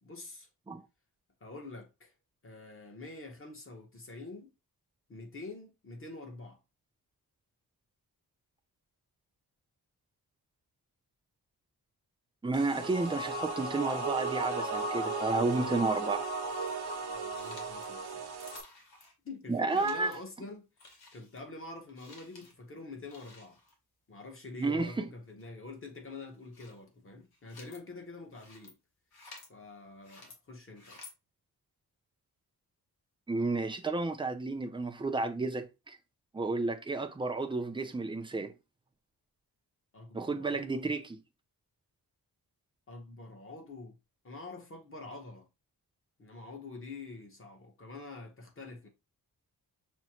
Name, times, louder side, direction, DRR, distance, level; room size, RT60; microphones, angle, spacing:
voice 1, 0.0-0.5 1.4-2.1 2.4-4.5 5.1-6.6 17.1-18.3 19.2-23.6 24.1-28.8 29.5-31.0 39.9-40.9 42.9-44.0 44.2-45.5 46.2-48.9, left 3 dB, 35° left, 0.9 m, -46 dB
voice 2, 12.4-16.3 19.5-20.2 24.6-25.1 33.3-36.0 36.3-38.5 40.1-41.0, right 3 dB, 15° right, 0.4 m, -31 dB
sound 1, 12.5-18.6, right 3 dB, 85° right, 0.7 m, -35 dB
sound 2, 16.4-16.8 17.3-17.9 18.4-19.1 19.7-20.3 20.8-21.4 21.9-22.5 23.0-23.7 25.3-25.5 26.3-26.8 27.2-27.8 28.3-28.7 29.1-29.5 30.0-30.4 30.8-31.1, left 3 dB, 70° left, 1.1 m, -53 dB
6.2 x 2.1 x 2.8 m
wide cardioid pair, 165°, 38 cm